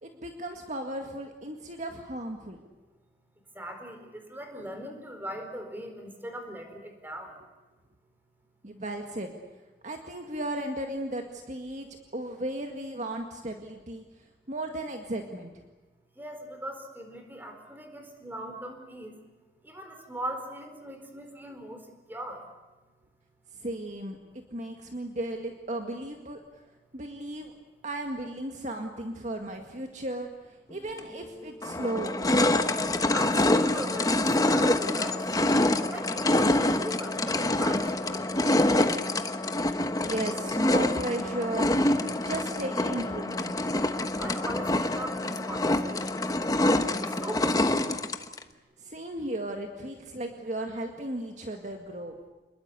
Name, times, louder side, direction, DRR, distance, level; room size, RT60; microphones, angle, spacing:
voice 1, 0.0-2.6 8.6-9.3 9.8-14.0 14.5-15.5 23.5-26.4 26.9-27.5 27.8-32.4 40.0-41.7 42.2-43.7 48.8-52.1, right 1 dB, 45° right, 3 dB, 2.0 m, -35 dB
voice 2, 3.5-7.4 16.1-19.2 19.6-22.4 33.1-35.2 35.9-39.0 44.2-48.1, right 1 dB, 10° right, 5 dB, 4.4 m, -40 dB
sound 1, 31.0-31.1 31.6-48.4, left 1 dB, 20° left, 1.1 m, -26 dB
28.5 x 21.5 x 8.4 m, 1.2 s
head